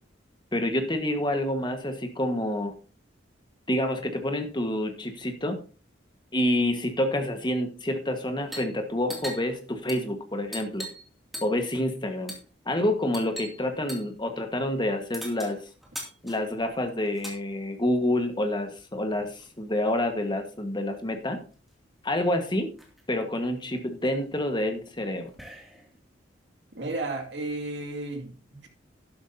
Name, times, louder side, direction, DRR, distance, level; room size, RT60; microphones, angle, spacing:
voice 1, 0.5-2.7 3.7-5.6 6.3-10.9 11.4-12.3 12.6-15.6 16.2-21.4 22.0-22.7 23.1-25.3, left 1 dB, 25° left, 1.5 m, -28 dB
sound 1, 8.4-8.7 9.0-11.1 11.3-11.7 12.3-12.5 13.1-13.6 13.9-14.1 15.1-17.4 18.5-19.5 20.8-20.9 21.1-21.7 22.2-22.3 22.5-23.0 23.6-26.0, equal, ahead, 2.5 m, -42 dB
voice 2, 26.7-28.7, right 2 dB, 65° right, 2.4 m, -33 dB
12.0 x 11.0 x 2.8 m
head